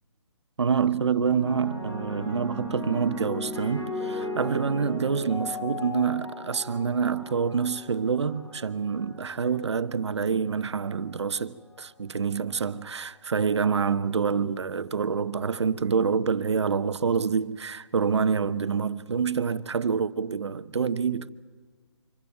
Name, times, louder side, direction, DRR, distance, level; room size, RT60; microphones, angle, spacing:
voice 1, 0.6-21.3, right 6 dB, 65° right, 0.9 m, -27 dB
sound 1, 1.3-9.8 10.7-11.1, left 1 dB, 55° left, 7.0 m, -37 dB
25.5 x 14.5 x 9.3 m
figure-of-eight pair, 145°, 15 cm